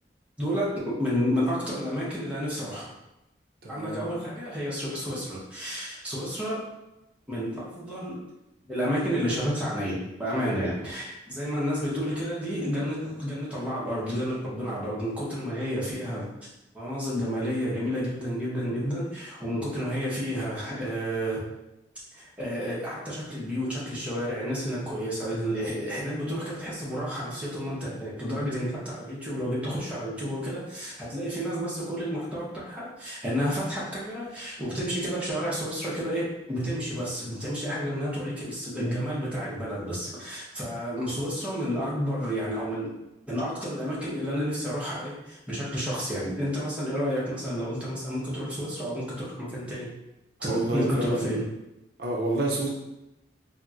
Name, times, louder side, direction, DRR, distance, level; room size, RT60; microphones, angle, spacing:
voice 1, 0.4-2.9 3.7-6.7 7.3-8.2 8.7-16.3 16.7-21.4 22.1-43.0 43.3-50.0 50.4-51.4, equal, 5° right, -8 dB, 0.8 m, -30 dB
voice 2, 3.6-4.0 50.4-51.4 52.0-52.7, right 1 dB, 55° right, -2 dB, 0.4 m, -29 dB
4.1 x 2.0 x 2.4 m, 0.92 s
head